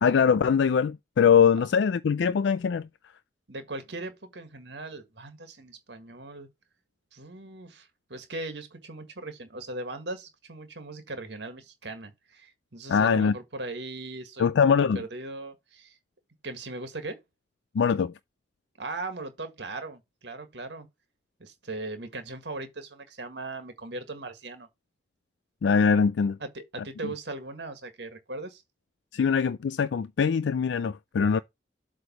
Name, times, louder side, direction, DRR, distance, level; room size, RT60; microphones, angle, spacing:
voice 1, 0.0-2.9 12.9-13.4 14.4-15.0 17.7-18.1 25.6-26.4 29.1-31.4, left 6 dB, 80° left, 0.4 m, -22 dB
voice 2, 3.5-6.5 7.1-14.5 15.0-16.0 16.4-17.2 18.8-20.9 21.4-24.7 26.4-28.6, right 2 dB, 70° right, 1.8 m, -39 dB
7.8 x 3.3 x 5.8 m
head